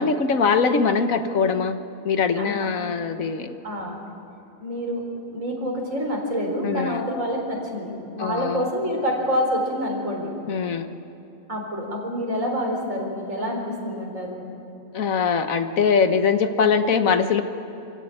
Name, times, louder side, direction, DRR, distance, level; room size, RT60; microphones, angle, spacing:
voice 1, 0.0-1.8 2.0-3.6 6.6-7.0 8.2-8.7 10.5-10.9 14.9-17.4, left 5 dB, 80° left, 8 dB, 1.5 m, -22 dB
voice 2, 2.4-2.7 3.6-4.0 4.6-5.0 5.3-10.3 11.5-14.4, equal, 70° right, 0 dB, 4.8 m, -27 dB
27.5 x 16.0 x 8.7 m, 2.9 s
omnidirectional pair, 1.4 m